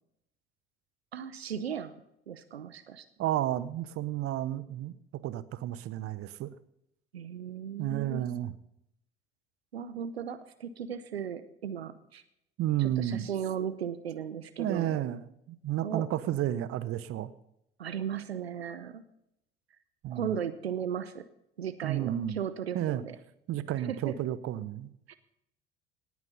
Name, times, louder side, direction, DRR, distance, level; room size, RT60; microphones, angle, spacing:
voice 1, 1.1-2.0 2.3-3.0 7.1-8.3 9.7-12.2 12.8-15.0 15.8-16.0 17.8-19.0 20.1-21.2 21.6-23.2 23.9-24.1 25.1-25.2, right 8 dB, 80° right, 13 dB, 0.8 m, -36 dB
voice 2, 3.2-4.9 5.2-6.5 7.8-8.5 12.6-13.3 14.6-15.2 15.5-17.3 20.0-20.3 21.8-22.4 22.7-23.0 23.5-24.9, right 12 dB, 45° right, 16 dB, 1.0 m, -31 dB
18.5 x 9.5 x 5.4 m, 0.78 s
figure-of-eight pair, 55°, 30 cm